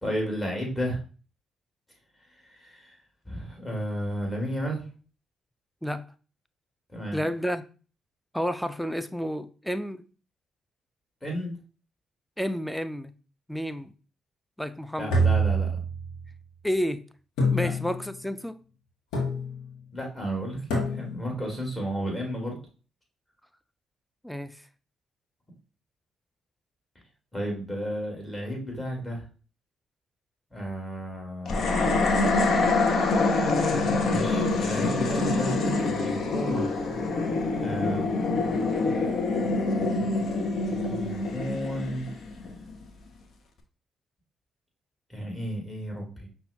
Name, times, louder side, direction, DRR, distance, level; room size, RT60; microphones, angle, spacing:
voice 1, 0.0-1.0 2.5-3.0 3.3-4.8 6.9-7.2 11.2-11.5 15.0-15.8 17.6-17.7 19.9-22.6 27.3-29.2 30.5-31.9 34.0-36.7 37.6-38.1 40.7-42.1 45.1-46.3, equal, 20° left, 2.1 m, -33 dB
voice 2, 7.1-7.6 8.3-10.0 12.4-13.1 13.5-13.9 14.6-15.2 16.6-17.0 17.5-18.6 24.2-24.7, equal, 5° left, 0.4 m, -30 dB
sound 1, 15.1-16.3 17.4-18.2 19.1-19.7 20.7-21.4, right 1 dB, 75° left, 1.0 m, -26 dB
sound 2, 31.5-42.8, left 3 dB, 60° left, 0.6 m, -26 dB
5.4 x 2.3 x 2.7 m
hypercardioid pair, 45°, 0 cm